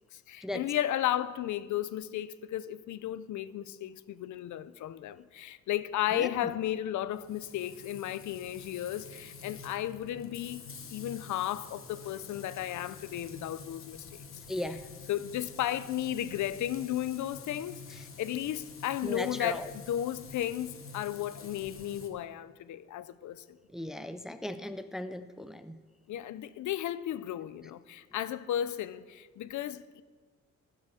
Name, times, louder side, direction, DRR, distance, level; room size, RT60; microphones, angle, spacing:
voice 1, 0.1-14.1 15.1-23.6 26.1-30.0, left 12 dB, 85° left, 0.5 m, -34 dB
voice 2, 6.1-6.5 14.5-14.9 19.0-19.7 23.7-25.8, left 1 dB, ahead, 0.4 m, -37 dB
Frying (food), 7.1-22.1, left 5 dB, 45° left, 1.2 m, -48 dB
14.0 x 5.8 x 6.8 m
wide cardioid pair, 145°, 29 cm